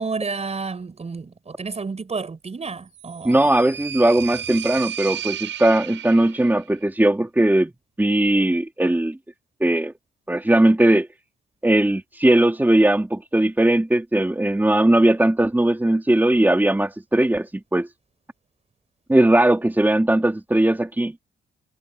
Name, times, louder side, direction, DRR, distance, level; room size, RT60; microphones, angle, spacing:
voice 1, 0.0-3.5, right 4 dB, 30° right, 6.9 m, -30 dB
sound 1, 2.9-6.7, right 10 dB, 70° right, 6.6 m, -33 dB
voice 2, 3.2-7.7 8.0-9.2 9.6-9.9 10.3-11.1 11.6-17.9 19.1-21.1, right 1 dB, 10° right, 3.8 m, -19 dB
cardioid pair, 90°, 20 cm